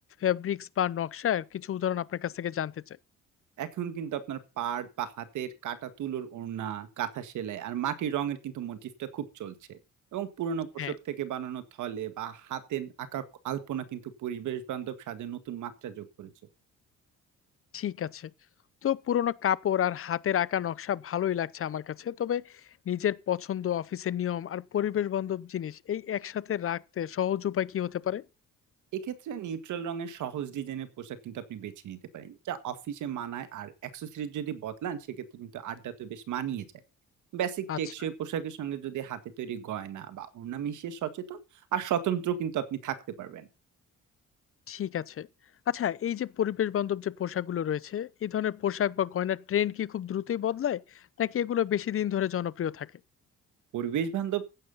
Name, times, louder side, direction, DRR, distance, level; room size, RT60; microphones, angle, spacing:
voice 1, 0.2-3.0 10.8-10.9 17.7-18.3 18.8-22.6 22.9-28.2 37.7-37.8 44.7-45.3 45.7-52.9, left 10 dB, 45° left, 0.7 m, -30 dB
voice 2, 3.6-9.8 10.1-16.3 28.9-36.7 37.3-41.4 41.7-43.5 53.7-54.4, right 9 dB, 80° right, 1.8 m, -34 dB
15.5 x 9.6 x 4.0 m
cardioid pair, 90°, 30 cm